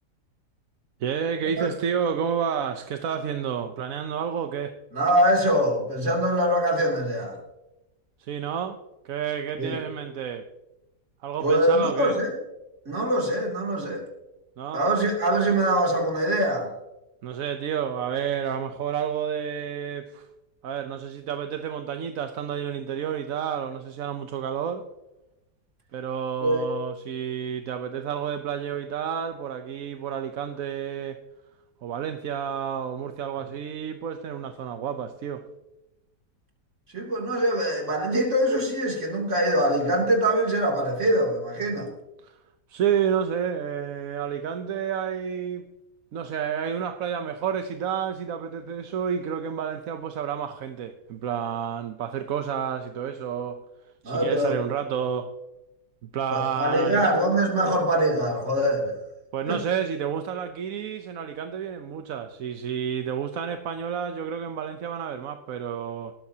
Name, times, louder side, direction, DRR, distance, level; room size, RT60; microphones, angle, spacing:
voice 1, 1.0-4.8 8.2-8.8 9.0-10.5 11.2-12.1 14.6-14.9 17.2-20.3 20.6-24.9 25.9-31.2 31.8-35.4 42.2-42.4 42.7-45.7 46.1-53.6 54.0-55.3 56.0-57.1 59.3-66.1, right 8 dB, 60° right, 7 dB, 1.1 m, -30 dB
voice 2, 4.9-7.4 9.6-9.8 11.4-12.3 12.8-14.0 14.7-16.7 26.4-26.6 36.9-41.9 54.0-54.5 56.3-58.9 59.5-59.6, right 1 dB, 45° right, 0 dB, 3.2 m, -23 dB
18.5 x 13.0 x 2.8 m, 0.97 s
omnidirectional pair, 1.8 m